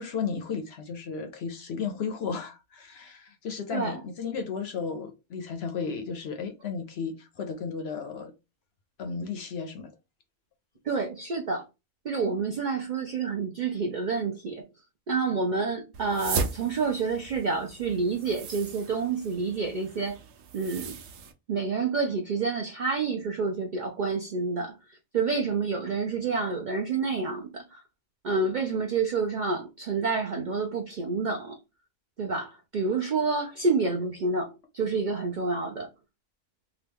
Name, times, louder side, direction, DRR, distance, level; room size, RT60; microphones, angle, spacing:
voice 1, 0.0-8.3 9.0-9.9, left 5 dB, 65° left, 0.7 m, -34 dB
voice 2, 3.7-4.0 10.8-11.7 12.0-14.7 15.1-20.2 20.5-21.0 21.5-27.8 28.2-31.6 32.2-35.9, right 4 dB, 65° right, 0.4 m, -28 dB
sound 1, 15.9-21.3, right 5 dB, 80° right, 1.0 m, -37 dB
2.9 x 2.2 x 3.4 m
omnidirectional pair, 1.3 m